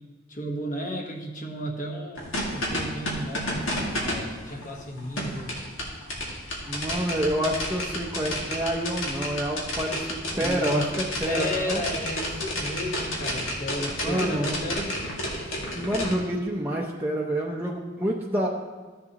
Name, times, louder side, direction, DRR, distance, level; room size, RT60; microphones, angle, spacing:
voice 1, 0.3-5.6 10.3-10.9 11.2-15.0, equal, 40° left, 2 dB, 1.2 m, -33 dB
sound 1, 2.2-16.1, left 1 dB, 90° left, 2.1 m, -31 dB
voice 2, 6.7-11.8 14.0-14.5 15.7-18.5, right 1 dB, 10° right, -3 dB, 0.6 m, -28 dB
14.5 x 7.2 x 2.9 m, 1.4 s
head